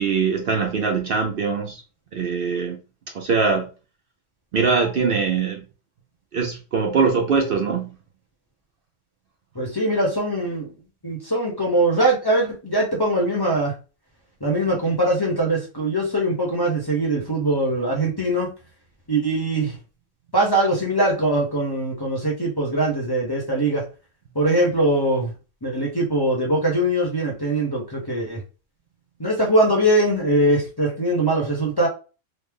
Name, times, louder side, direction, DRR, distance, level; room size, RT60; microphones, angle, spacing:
voice 1, 0.0-1.8 2.1-2.8 3.1-3.7 4.5-5.6 6.3-7.9, right 5 dB, 60° right, 0.7 m, -22 dB
voice 2, 9.5-10.7 11.0-13.7 14.4-18.5 19.1-19.8 20.3-23.8 24.3-25.3 25.6-28.4 29.2-31.9, right 1 dB, 25° left, 0.7 m, -22 dB
3.2 x 2.0 x 3.5 m
omnidirectional pair, 1.3 m